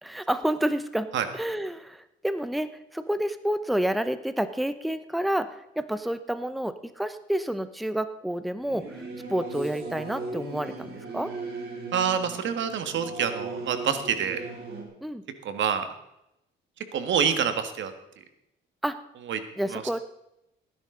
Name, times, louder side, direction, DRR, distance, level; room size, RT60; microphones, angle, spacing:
voice 1, 0.0-1.1 1.3-11.3 15.0-15.2 18.8-19.0 19.6-20.0, right 1 dB, ahead, 11 dB, 0.8 m, -29 dB
Singing / Musical instrument, 8.6-14.8, right 3 dB, 50° right, 4.7 m, -38 dB
voice 2, 11.9-14.4 15.4-15.8 16.9-17.9 19.3-19.4 19.7-19.8, right 7 dB, 70° right, 9 dB, 1.7 m, -26 dB
18.5 x 10.5 x 3.9 m, 0.84 s
cardioid pair, 90°, 20 cm